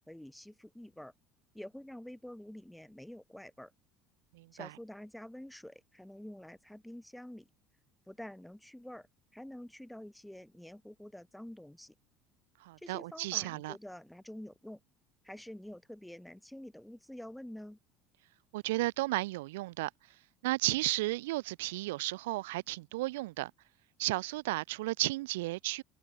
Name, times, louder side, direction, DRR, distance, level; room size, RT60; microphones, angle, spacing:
voice 1, 0.1-1.1 1.5-3.7 4.5-7.5 8.1-11.9 12.8-14.8 15.2-17.8, left 1 dB, 5° left, 4.4 m, -48 dB
voice 2, 4.3-4.7 12.6-13.7 18.5-19.9 20.4-23.5 24.0-25.8, right 20 dB, 80° right, 1.5 m, -33 dB
hypercardioid pair, 75°, 0 cm